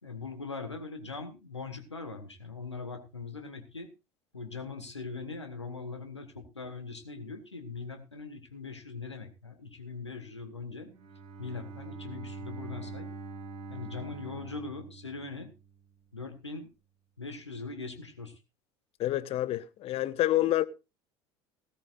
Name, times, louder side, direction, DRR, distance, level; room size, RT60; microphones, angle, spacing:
voice 1, 0.0-3.9 4.3-10.9 11.4-13.1 13.7-15.5 16.1-16.7 17.2-18.4, left 4 dB, 85° left, 1.8 m, -41 dB
Bowed string instrument, 10.9-15.9, right 4 dB, 40° right, 6.0 m, -44 dB
voice 2, 19.0-20.6, left 14 dB, 45° left, 1.0 m, -28 dB
17.0 x 13.5 x 2.5 m
figure-of-eight pair, 70°, 14 cm